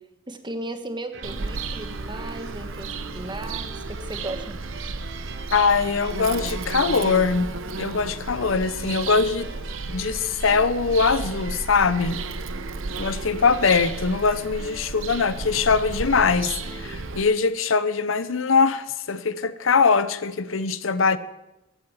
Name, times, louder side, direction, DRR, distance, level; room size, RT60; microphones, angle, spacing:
voice 1, 0.3-4.6 4.8-4.9, right 2 dB, 25° right, 8 dB, 1.3 m, -36 dB
sound 1, 1.1-17.2, right 3 dB, 60° right, 1.4 m, -42 dB
Bird vocalization bird call bird song, 1.2-17.2, right 3 dB, 80° right, 0.8 m, -33 dB
voice 2, 5.5-7.5 7.8-9.5 9.9-12.2 13.0-16.5 16.8-21.2, left 5 dB, 80° left, 14 dB, 0.8 m, -22 dB
14.5 x 8.8 x 7.2 m, 0.94 s
head